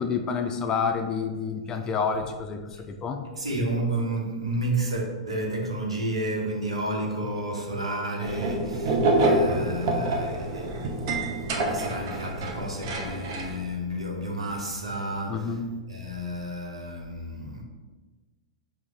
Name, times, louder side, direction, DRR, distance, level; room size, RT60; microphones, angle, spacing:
voice 1, 0.0-2.6 2.9-3.2 15.3-15.7, left 5 dB, 25° left, 5 dB, 0.4 m, -28 dB
voice 2, 3.3-15.6 15.9-17.6, right 1 dB, 80° right, 0 dB, 0.8 m, -31 dB
sound 1, 8.2-13.6, right 2 dB, 45° right, 0.7 m, -27 dB
4.5 x 2.1 x 3.8 m, 1.3 s
figure-of-eight pair, 100°, 3 cm